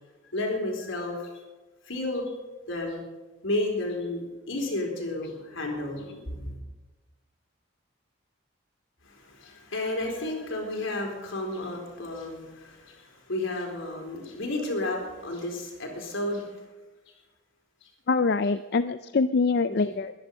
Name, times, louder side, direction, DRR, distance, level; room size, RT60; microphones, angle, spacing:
voice 1, 0.3-1.4 1.8-2.4 2.7-3.0 3.4-6.6 9.0-16.5 17.8-17.9 19.7-19.9, left 2 dB, 75° left, 1 dB, 4.2 m, -32 dB
voice 2, 18.1-20.1, left 4 dB, 50° left, 11 dB, 0.4 m, -24 dB
21.5 x 10.5 x 5.3 m, 1.2 s
head